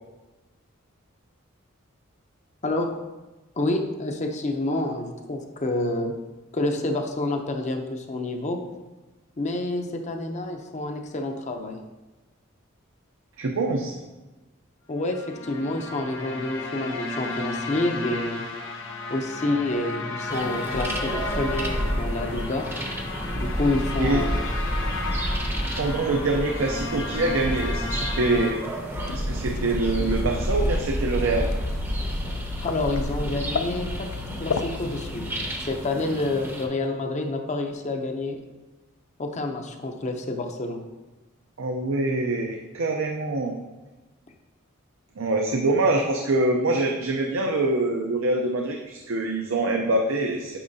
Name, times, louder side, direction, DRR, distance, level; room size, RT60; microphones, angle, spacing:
voice 1, 2.6-2.9 3.6-6.1 6.5-8.6 9.4-11.8 14.9-18.4 19.1-22.7 23.3-24.5 32.6-34.1 34.4-35.2 35.6-38.4 39.2-40.8, left 2 dB, 35° left, 4 dB, 0.5 m, -28 dB
voice 2, 13.4-14.0 24.0-24.2 25.8-28.6 29.1-31.5 41.6-43.5 45.2-50.6, right 2 dB, 75° right, 2 dB, 0.5 m, -25 dB
sound 1, 15.0-28.5, left 3 dB, 60° left, 0.8 m, -34 dB
sound 2, 20.3-36.7, equal, 10° right, 0.6 m, -30 dB
sound 3, 28.9-35.6, left 6 dB, 90° left, 0.4 m, -34 dB
8.6 x 4.8 x 2.7 m, 1.1 s
head